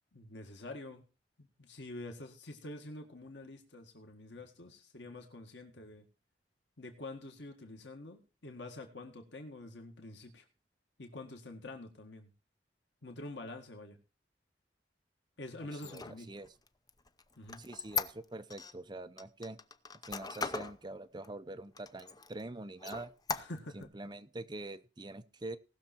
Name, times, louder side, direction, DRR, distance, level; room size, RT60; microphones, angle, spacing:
voice 1, 0.1-1.0 1.4-6.0 6.8-10.5 11.0-12.3 13.0-14.0 15.4-16.3 17.4-17.6 23.3-23.9, left 2 dB, 85° left, 4 dB, 1.9 m, -47 dB
Squeak, 15.7-18.7 19.2-20.8 21.2-21.3 21.7-22.4 22.8-23.8, left 5 dB, 20° left, 0.7 m, -39 dB
voice 2, 15.7-16.5 17.6-19.6 20.1-23.1 23.7-25.6, right 2 dB, 25° right, 11 dB, 0.7 m, -45 dB
19.0 x 6.6 x 4.4 m, 0.32 s
head